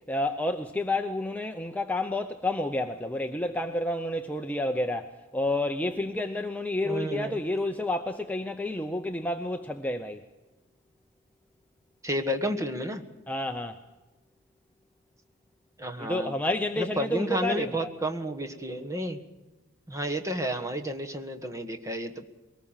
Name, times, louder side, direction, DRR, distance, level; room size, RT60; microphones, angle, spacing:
voice 1, 0.1-10.2 13.3-13.8 16.0-17.9, left 1 dB, 5° left, 4 dB, 0.7 m, -30 dB
voice 2, 6.8-7.4 12.0-13.0 15.8-16.4 16.8-19.2 19.9-22.2, equal, 15° right, 5 dB, 1.4 m, -31 dB
22.5 x 19.0 x 7.3 m, 1.2 s
head